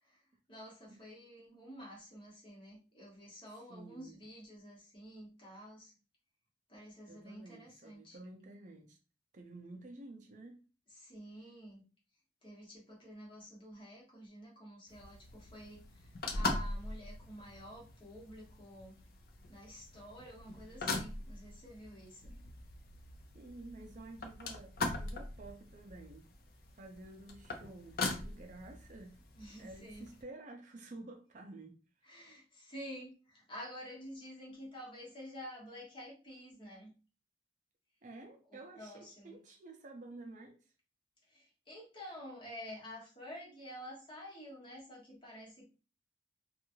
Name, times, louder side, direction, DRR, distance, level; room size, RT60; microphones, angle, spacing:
voice 1, 0.5-5.9 6.7-8.2 10.9-11.8 12.4-19.0 19.5-22.3 29.3-30.1 32.0-36.9 38.5-39.4 41.3-45.6, equal, 30° left, 1.2 m, -50 dB
voice 2, 3.7-4.2 7.1-9.0 9.3-10.6 23.3-26.3 26.7-29.2 29.6-31.8 38.0-40.6, right 2 dB, 45° right, 0.4 m, -51 dB
sound 1, 14.9-30.2, left 2 dB, 55° left, 0.5 m, -42 dB
2.9 x 2.4 x 2.6 m
head